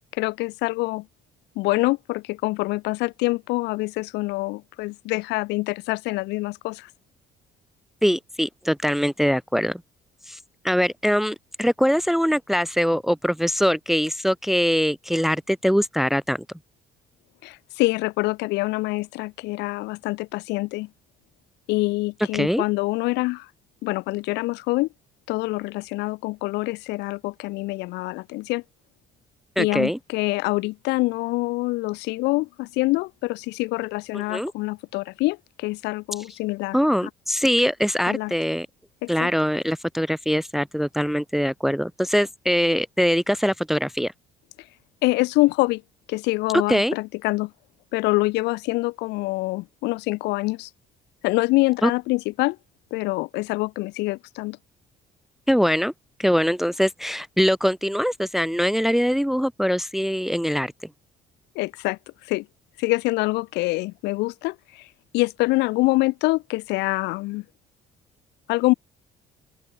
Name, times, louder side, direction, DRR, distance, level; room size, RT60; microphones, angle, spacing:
voice 1, 0.2-1.1 1.6-6.9 17.4-20.9 21.7-23.5 23.8-24.9 25.3-28.6 29.6-36.8 38.1-38.3 39.0-39.3 45.0-45.8 46.1-47.5 47.9-50.7 51.2-52.6 52.9-54.6 61.5-62.5 62.8-64.9 65.1-67.4 68.5-68.7, left 22 dB, 90° left, 0.7 m, -25 dB
voice 2, 8.0-9.8 10.3-10.4 10.6-16.4 22.3-22.6 29.6-30.0 34.3-34.5 36.7-38.7 39.1-44.1 46.7-46.9 51.8-51.9 55.5-55.9 56.2-60.7, equal, ahead, 0.9 m, -22 dB
open air
cardioid pair, 110°, 17 cm